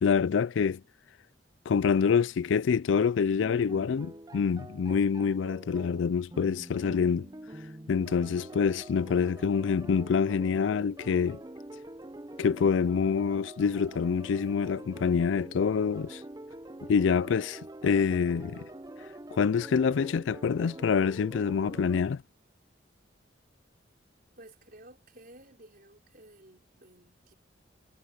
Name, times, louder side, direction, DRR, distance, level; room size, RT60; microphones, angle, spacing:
voice 1, 0.0-0.8 1.7-7.3 7.9-11.4 12.4-16.2 16.9-18.7 19.4-22.2, left 6 dB, 85° left, 0.4 m, -26 dB
sound 1, 3.4-22.0, right 1 dB, 20° right, 0.8 m, -45 dB
voice 2, 24.4-27.3, right 1 dB, 50° right, 4.9 m, -54 dB
head